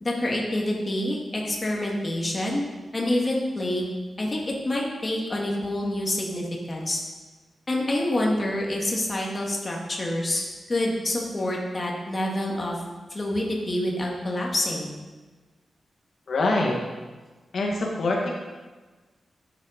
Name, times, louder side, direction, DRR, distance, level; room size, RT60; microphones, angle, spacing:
voice 1, 0.0-2.6 2.9-3.9 4.2-7.0 7.7-12.8 13.1-14.9, left 1 dB, 25° left, -2 dB, 1.9 m, -27 dB
voice 2, 16.3-16.8 17.5-18.3, left 2 dB, 60° left, -1 dB, 1.4 m, -24 dB
11.0 x 7.7 x 5.0 m, 1.3 s
wide cardioid pair, 150°, 0 cm